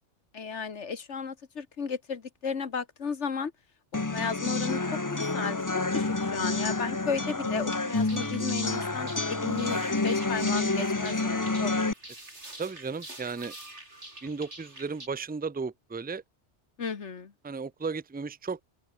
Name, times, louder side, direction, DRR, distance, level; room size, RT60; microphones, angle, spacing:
voice 1, 0.3-3.5 4.1-5.0 5.3-11.7 16.8-17.3, left 5 dB, 90° left, 1.9 m, -34 dB
sound 1, 3.9-11.9, left 3 dB, 20° left, 0.8 m, -29 dB
sound 2, 7.9-15.1, right 2 dB, 85° right, 6.8 m, -47 dB
voice 2, 12.6-13.5 14.2-16.2 17.4-18.6, right 4 dB, 15° right, 0.3 m, -34 dB
open air
omnidirectional pair, 1.2 m